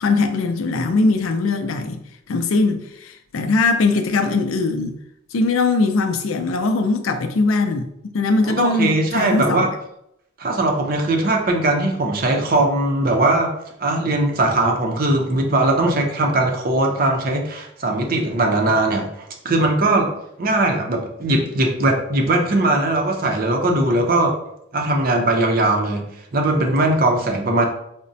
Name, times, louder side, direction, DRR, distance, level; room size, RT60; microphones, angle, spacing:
voice 1, 0.0-2.0 2.3-4.9 5.3-9.7, left 3 dB, 80° left, 0.4 m, -20 dB
voice 2, 8.4-9.7 10.4-13.5 13.8-20.1 20.4-24.4 24.7-27.6, right 2 dB, 45° right, 0.5 m, -20 dB
4.9 x 2.1 x 2.6 m
head